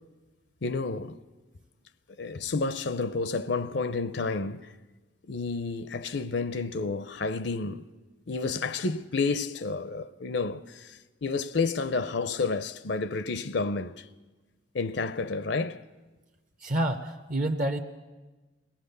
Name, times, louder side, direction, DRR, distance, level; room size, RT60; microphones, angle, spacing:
voice 1, 0.6-1.2 2.2-4.7 5.2-7.8 8.3-14.1 14.7-15.8, left 4 dB, 65° left, 0.6 m, -30 dB
voice 2, 16.6-17.8, right 1 dB, 40° right, 0.8 m, -28 dB
22.0 x 18.0 x 6.7 m
head